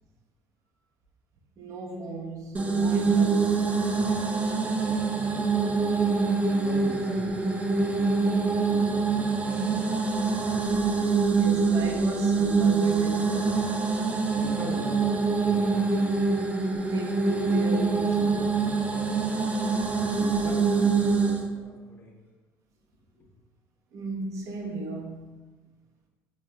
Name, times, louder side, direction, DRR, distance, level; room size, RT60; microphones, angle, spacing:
voice 1, 1.6-3.7 9.4-10.1 11.0-13.7 16.8-18.5 23.9-25.3, right 3 dB, 55° right, 0.7 m, -37 dB
sound 1, 2.5-21.5, right 4 dB, 20° right, 0.5 m, -25 dB
voice 2, 6.6-8.0 14.4-16.0 20.1-22.1 23.1-23.2, left 2 dB, 35° left, 1.0 m, -41 dB
4.9 x 3.2 x 2.2 m
supercardioid pair, 80°, 7 cm